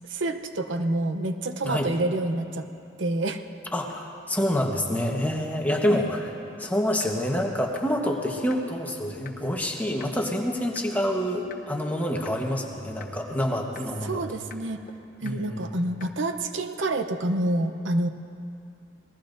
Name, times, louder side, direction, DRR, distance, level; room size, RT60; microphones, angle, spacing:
voice 1, 0.1-2.7 3.0-3.4 5.9-6.1 14.0-14.8 15.2-18.1, right 2 dB, 80° right, 7 dB, 0.8 m, -28 dB
voice 2, 3.7-6.3 6.6-14.2 15.2-15.6, equal, 10° left, 1 dB, 1.2 m, -27 dB
sound 1, 6.3-6.4 6.6-6.7 7.0-7.1 7.4-7.5 7.7-7.8 8.1-8.2 8.5-8.6 8.9-9.0 9.2-9.3 9.6-9.7 10.0-10.1 10.4-10.5 10.7-10.8 11.1-11.2 11.5-11.6 11.9-12.0 12.2-12.3 12.6-12.7 13.0-13.1 13.4-13.5 13.7-13.8 14.1-14.2 14.5-14.6 14.9-15.0 15.2-15.3 15.6-15.7 16.0-16.1, left 6 dB, 45° left, 1.0 m, -43 dB
27.5 x 19.5 x 2.6 m, 2.7 s
head